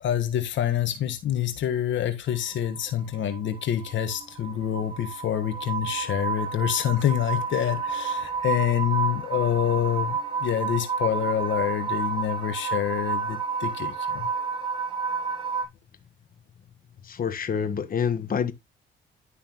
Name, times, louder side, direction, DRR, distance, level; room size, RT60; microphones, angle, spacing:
voice 1, 0.0-14.3, left 10 dB, 70° left, 1.5 m, -27 dB
sound 1, 2.3-15.6, right 5 dB, 25° right, 3.4 m, -30 dB
voice 2, 17.0-18.5, left 7 dB, 45° left, 1.4 m, -27 dB
11.5 x 6.4 x 3.1 m
cardioid pair, 90°, 20 cm